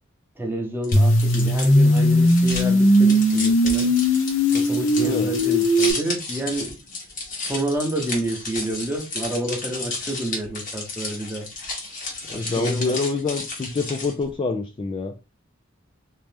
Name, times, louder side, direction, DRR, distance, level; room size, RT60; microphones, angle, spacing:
voice 1, 0.4-3.9 4.5-6.8 7.4-11.5 12.3-13.0, right 1 dB, 10° right, 0.8 m, -29 dB
sound 1, 0.8-14.3, left 3 dB, 40° left, 1.3 m, -33 dB
sound 2, 0.9-5.9, equal, 75° left, 0.9 m, -18 dB
voice 2, 5.0-5.3 12.3-15.2, left 3 dB, 25° left, 0.3 m, -26 dB
3.1 x 2.9 x 3.4 m
head